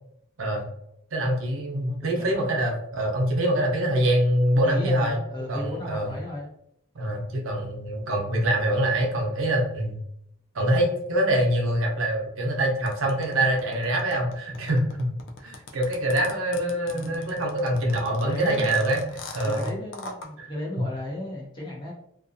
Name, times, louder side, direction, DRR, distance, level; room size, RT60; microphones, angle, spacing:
voice 1, 1.1-5.2 5.5-6.1 6.9-10.0 10.5-15.1 15.4-19.0 19.3-19.7 20.4-20.5, right 1 dB, 85° right, 1 dB, 0.6 m, -24 dB
voice 2, 1.8-2.6 4.6-6.5 16.9-17.2 18.2-18.7 19.5-21.9, left 1 dB, 25° left, -5 dB, 0.7 m, -35 dB
sound 1, 12.9-20.3, left 3 dB, 65° left, 0.4 m, -41 dB
2.5 x 2.2 x 2.5 m, 0.77 s
head